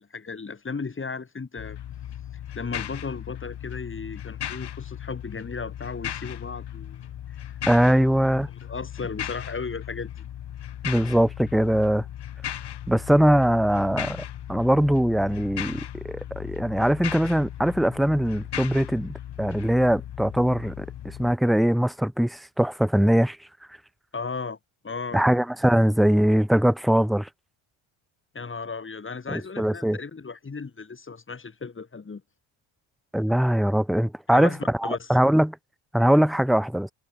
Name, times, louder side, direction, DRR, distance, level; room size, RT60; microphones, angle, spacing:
voice 1, 0.0-1.8 2.5-7.0 7.9-8.0 8.6-10.3 24.1-24.6 24.8-25.2 28.3-32.2 34.3-35.2, left 4 dB, 25° left, 7.6 m, -35 dB
sound 1, 1.6-21.4, left 11 dB, 50° left, 6.1 m, -37 dB
voice 2, 7.7-8.5 10.8-12.0 12.9-14.2 14.5-23.4 25.1-27.3 29.3-30.0 33.1-35.6 35.9-36.9, equal, ahead, 0.4 m, -22 dB
cardioid pair, 100°, 50 cm